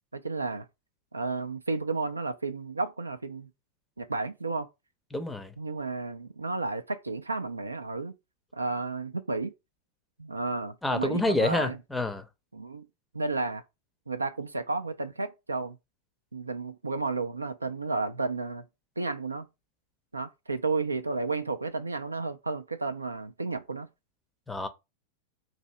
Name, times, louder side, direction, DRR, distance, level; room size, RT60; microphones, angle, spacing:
voice 1, 0.1-0.7 1.1-3.5 4.0-4.7 5.6-8.1 8.5-9.5 10.2-11.8 12.5-12.9 13.1-13.6 14.1-15.8 16.3-18.6 19.0-19.5 20.1-23.9, right 3 dB, 80° right, 0.4 m, -32 dB
voice 2, 5.1-5.5 10.8-12.3 24.5-24.7, left 2 dB, 5° left, 0.5 m, -28 dB
2.7 x 2.6 x 4.2 m
figure-of-eight pair, 90°, 0 cm